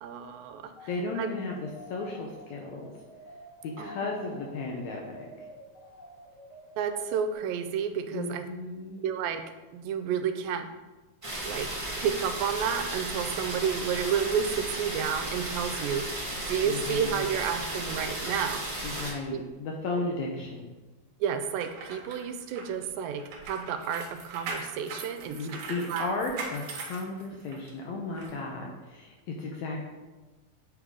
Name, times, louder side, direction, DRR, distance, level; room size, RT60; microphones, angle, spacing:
voice 1, 0.0-0.7 1.2-1.3 3.8-4.0 6.8-8.4 9.0-9.4 9.7-10.7 11.4-11.7 12.0-16.2 16.5-18.6 19.3-19.4 21.2-25.4 25.9-26.1, right 7 dB, 85° right, 9 dB, 2.3 m, -31 dB
sound 1, 0.7-7.3, equal, 20° left, 1.1 m, -49 dB
voice 2, 0.9-3.0 3.6-5.3 8.1-9.0 16.6-17.3 18.8-20.6 25.3-29.8, left 3 dB, 75° left, 0 dB, 1.7 m, -35 dB
sound 2, 11.2-19.1, right 1 dB, 45° right, 0.4 m, -34 dB
sound 3, 21.4-27.7 28.2-28.3, right 4 dB, 70° right, 2.1 m, -40 dB
8.3 x 3.8 x 4.7 m, 1.2 s
omnidirectional pair, 4.1 m